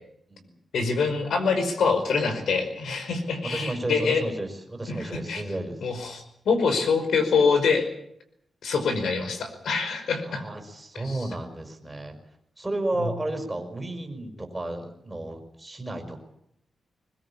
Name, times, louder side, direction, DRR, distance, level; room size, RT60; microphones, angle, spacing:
voice 1, 0.7-4.2 4.9-5.4 5.8-7.8 8.6-10.4 11.0-11.2, left 5 dB, 80° left, 8 dB, 5.2 m, -25 dB
voice 2, 3.5-5.8 10.2-12.2 12.6-16.2, right 1 dB, 10° right, 4 dB, 5.2 m, -32 dB
21.0 x 21.0 x 8.7 m, 0.74 s
wide cardioid pair, 125°, 0 cm